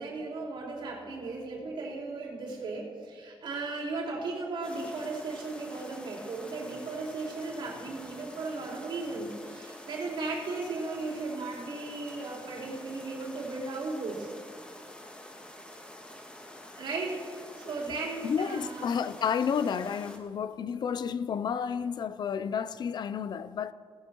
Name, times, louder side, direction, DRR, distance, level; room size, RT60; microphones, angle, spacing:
voice 1, 0.0-14.3 16.8-17.2 17.6-19.0, right 3 dB, 70° right, 3.9 m, -36 dB
sound 1, 4.6-20.2, left 1 dB, 10° left, 1.4 m, -48 dB
voice 2, 18.2-23.7, left 7 dB, 50° left, 0.4 m, -31 dB
19.0 x 15.0 x 3.0 m
wide cardioid pair, 170°, 9 cm